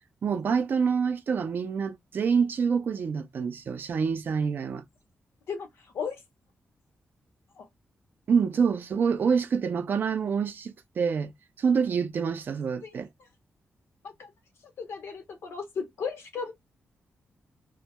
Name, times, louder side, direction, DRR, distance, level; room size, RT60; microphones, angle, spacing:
voice 1, 0.2-4.8 8.3-11.3 11.6-13.1, right 6 dB, 50° right, 0.3 m, -26 dB
voice 2, 14.8-16.5, left 6 dB, 75° left, 0.6 m, -35 dB
2.2 x 2.1 x 2.7 m
wide cardioid pair, 165°, 5 cm